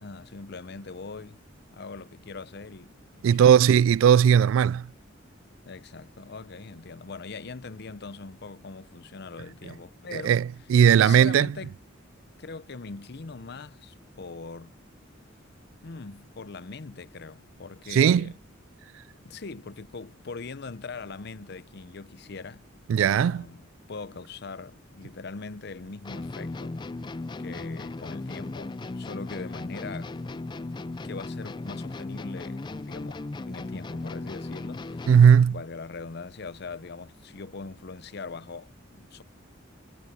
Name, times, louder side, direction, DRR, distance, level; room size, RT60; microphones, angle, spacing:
voice 1, 0.0-1.4 1.7-2.9 3.4-3.6 5.6-10.4 10.9-11.7 12.4-14.8 15.8-18.3 19.2-22.6 23.0-26.8 27.4-30.2 31.0-35.1 35.5-39.2, left 4 dB, 55° left, 0.7 m, -41 dB
voice 2, 3.2-4.9 10.1-11.5 17.9-18.3 22.9-23.5 35.1-35.6, right 8 dB, 80° right, 0.3 m, -18 dB
sound 1, 26.1-35.5, left 2 dB, 25° left, 0.4 m, -36 dB
head